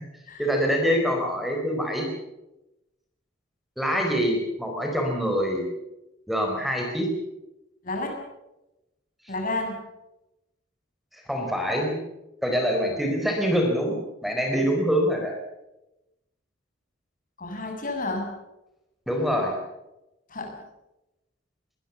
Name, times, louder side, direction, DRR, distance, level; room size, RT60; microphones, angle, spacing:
voice 1, 0.4-2.1 3.8-5.6 6.3-7.1 11.3-12.0 12.4-15.3 19.1-19.6, equal, ahead, 2 dB, 4.7 m, -25 dB
voice 2, 7.8-8.2 9.3-9.8 17.4-18.2 20.3-20.5, left 2 dB, 45° left, 3 dB, 7.0 m, -30 dB
22.5 x 20.5 x 7.2 m, 0.93 s
head